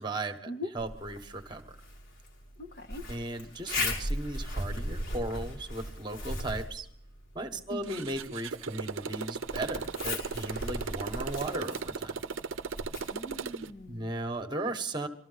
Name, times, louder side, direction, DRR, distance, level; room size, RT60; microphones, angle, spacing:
voice 1, 0.0-0.5 0.7-1.8 3.1-6.9 7.3-12.3 13.9-15.1, right 2 dB, 20° right, 7 dB, 1.3 m, -36 dB
Zipper (clothing), 0.8-14.3, left 1 dB, 85° left, 4.6 m, -39 dB
voice 2, 2.6-3.1 7.7-8.1 13.1-14.2, left 1 dB, 50° left, 4 dB, 1.5 m, -41 dB
Motorcycle, 7.8-13.7, right 5 dB, 80° right, 0.6 m, -37 dB
24.0 x 14.0 x 4.0 m, 0.67 s
head